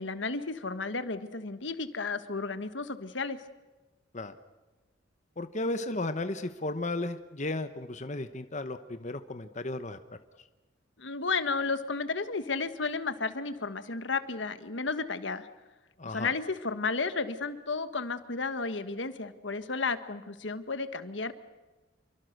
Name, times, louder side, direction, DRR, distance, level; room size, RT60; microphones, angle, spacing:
voice 1, 0.0-3.4 11.0-15.5 16.1-21.3, left 4 dB, 75° left, 11 dB, 1.4 m, -33 dB
voice 2, 5.4-10.0 16.0-16.3, left 2 dB, 40° left, 10 dB, 1.0 m, -34 dB
28.0 x 24.0 x 6.6 m, 1.2 s
head